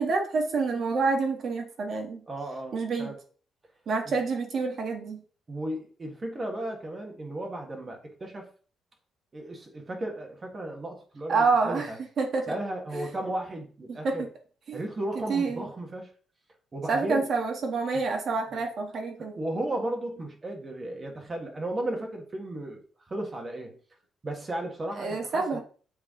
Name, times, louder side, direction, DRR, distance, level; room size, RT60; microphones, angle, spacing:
voice 1, 0.0-2.2 2.7-3.1 3.9-5.2 11.3-11.9 12.2-12.5 12.9-13.1 13.9-14.2 14.7-14.8 15.3-15.7 16.9-19.4 25.0-25.6, right 4 dB, 55° right, 1.6 m, -27 dB
voice 2, 2.3-3.2 4.0-4.1 5.5-8.5 9.3-12.0 12.5-14.3 14.7-16.1 16.7-17.2 18.5-18.6 19.2-22.8 23.1-23.8 24.2-25.6, right 1 dB, 30° right, 1.6 m, -35 dB
7.9 x 3.4 x 3.8 m
cardioid pair, 90°, 0 cm